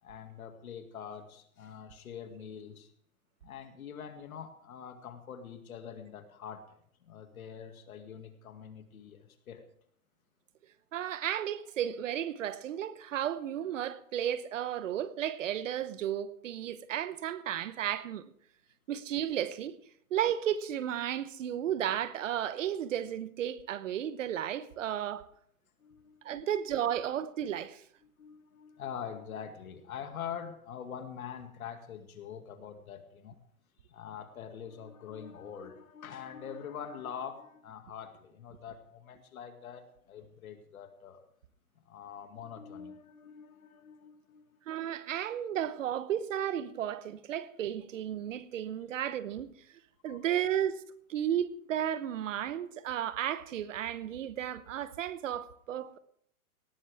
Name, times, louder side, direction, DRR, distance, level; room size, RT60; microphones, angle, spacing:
voice 1, 0.0-2.9 3.4-9.7 25.8-26.5 28.2-33.3 33.9-41.2 41.9-44.6 50.0-50.3 55.7-55.8, left 8 dB, 70° left, 2.2 m, -44 dB
voice 2, 10.9-18.3 18.9-19.8 20.1-25.2 26.2-27.8 44.7-49.5 50.0-50.8 51.1-56.0, right 10 dB, 60° right, 1.0 m, -33 dB
18.5 x 13.0 x 3.5 m
hypercardioid pair, 155°, 44 cm